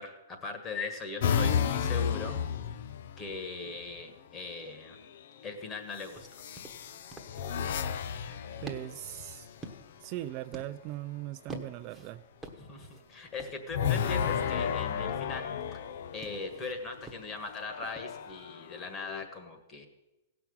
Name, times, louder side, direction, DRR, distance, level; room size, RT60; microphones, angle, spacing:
voice 1, 0.0-2.4 3.2-5.0 5.4-6.3 12.6-15.5 16.1-19.9, left 3 dB, 20° left, 6 dB, 1.6 m, -39 dB
sound 1, 1.2-3.5 4.7-5.2 6.3-9.7 13.7-16.6 17.4-19.2, left 7 dB, 60° left, 0.6 m, -33 dB
sound 2, 6.1-18.5, right 2 dB, 5° right, 1.2 m, -51 dB
voice 2, 8.6-9.5 10.0-12.2, right 15 dB, 35° right, 10 dB, 0.4 m, -39 dB
16.5 x 5.9 x 8.7 m, 1.0 s
hypercardioid pair, 155°, 0 cm